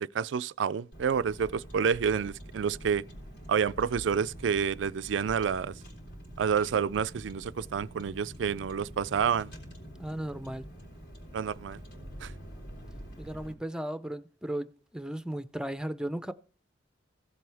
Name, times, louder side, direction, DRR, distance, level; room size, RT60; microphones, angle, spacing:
voice 1, 0.1-3.0 3.5-5.7 6.4-9.5 11.3-11.8 12.2-12.3, right 7 dB, 80° right, 0.4 m, -29 dB
Car, 0.9-13.5, equal, 65° left, 3.7 m, -46 dB
voice 2, 10.0-10.7 13.2-16.3, right 1 dB, 5° right, 0.6 m, -36 dB
16.0 x 7.7 x 3.4 m
head